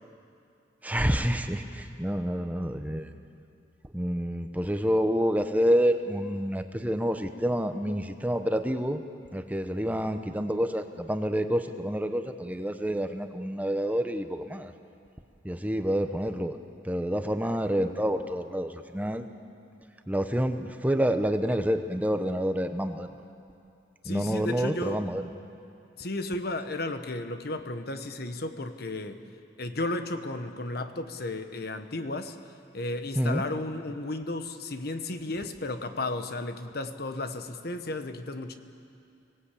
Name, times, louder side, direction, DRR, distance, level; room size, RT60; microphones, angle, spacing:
voice 1, 0.8-1.6 2.0-3.0 3.9-9.0 9.3-14.7 15.4-16.6 16.9-19.3 20.1-23.1 24.1-25.2 33.2-33.4, equal, 10° right, 7 dB, 0.9 m, -28 dB
voice 2, 24.0-25.1 26.0-29.2 29.6-32.4 32.7-38.5, left 2 dB, 60° left, 8 dB, 1.3 m, -34 dB
25.0 x 18.5 x 8.4 m, 2.5 s
head